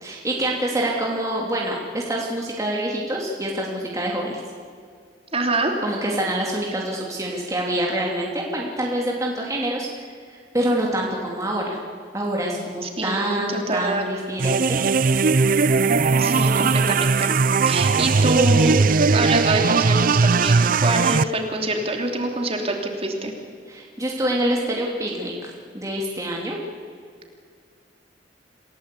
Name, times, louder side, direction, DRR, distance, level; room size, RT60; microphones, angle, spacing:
voice 1, 0.0-4.4 5.8-10.1 10.3-11.8 12.1-14.8 23.7-26.6, right 1 dB, 20° right, -2 dB, 2.7 m, -26 dB
voice 2, 5.3-5.8 12.8-14.1 16.2-17.3 17.7-18.8 19.0-23.3, right 2 dB, 35° right, 2 dB, 3.2 m, -25 dB
sound 1, 14.4-21.2, right 4 dB, 50° right, 0.6 m, -18 dB
28.0 x 17.5 x 8.4 m, 2.1 s
head